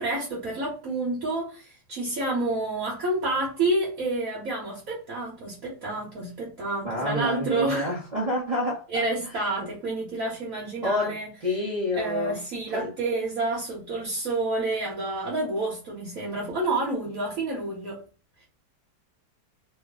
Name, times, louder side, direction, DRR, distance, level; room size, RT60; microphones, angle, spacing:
voice 1, 0.0-7.9 8.9-11.3 11.9-18.0, right 2 dB, 60° right, 1.4 m, -29 dB
voice 2, 6.8-9.1 9.6-9.7 10.8-12.4 12.7-12.9, left 1 dB, 35° right, 0.8 m, -28 dB
3.1 x 2.2 x 3.6 m
omnidirectional pair, 1.8 m